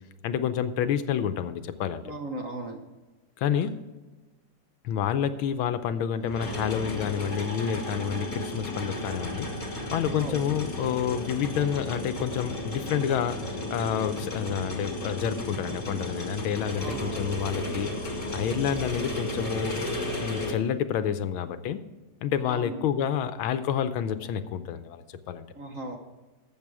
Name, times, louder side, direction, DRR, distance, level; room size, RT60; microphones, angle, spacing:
voice 1, 0.2-2.0 3.4-3.8 4.8-9.5 9.9-17.9 18.3-19.8 20.2-21.8 22.2-25.5, left 9 dB, 75° left, 11 dB, 1.5 m, -29 dB
voice 2, 2.0-2.8 10.1-10.3 16.8-17.4 22.5-22.8 25.6-26.0, right 2 dB, 50° right, 3 dB, 1.1 m, -37 dB
sound 1, 3.6-3.7 6.3-20.6, left 1 dB, 25° left, 1.7 m, -34 dB
13.0 x 7.5 x 4.8 m, 1.2 s
omnidirectional pair, 2.4 m